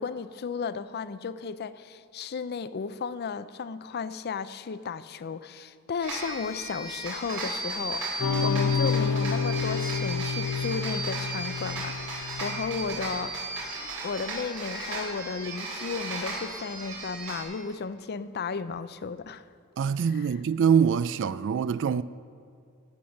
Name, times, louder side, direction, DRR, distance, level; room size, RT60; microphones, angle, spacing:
voice 1, 0.0-13.6 14.0-19.4 20.2-20.3, left 5 dB, 50° left, 0.5 m, -34 dB
sound 1, 6.0-17.4, right 2 dB, 85° right, 3.8 m, -35 dB
sound 2, 8.2-13.0, left 5 dB, 80° left, 0.7 m, -29 dB
voice 2, 19.8-22.0, right 7 dB, 60° right, 0.3 m, -24 dB
15.0 x 8.5 x 6.4 m
head